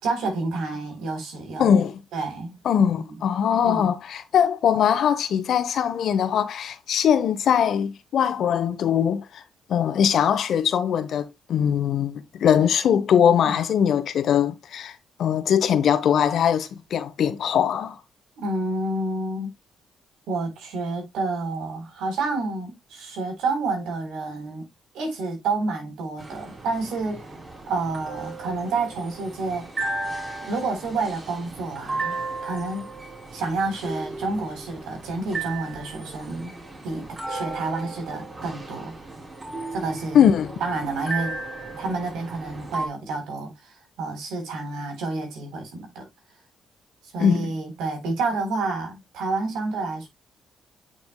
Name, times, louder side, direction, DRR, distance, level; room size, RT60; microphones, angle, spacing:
voice 1, 0.0-1.7 2.1-2.6 3.0-3.2 3.6-3.9 13.4-13.6 18.4-19.5 20.3-24.7 24.9-27.3 27.7-29.7 30.4-32.9 33.3-36.5 36.8-38.9 39.7-40.3 40.6-41.3 41.8-46.1 47.0-50.1, right 3 dB, 85° right, 3.9 m, -29 dB
voice 2, 1.6-2.0 2.6-9.4 9.7-18.0 40.1-40.5 47.2-47.5, left 8 dB, 65° left, 1.0 m, -21 dB
sound 1, 26.2-42.9, right 3 dB, 30° right, 3.0 m, -35 dB
8.9 x 6.1 x 2.3 m
cardioid pair, 90°, 0 cm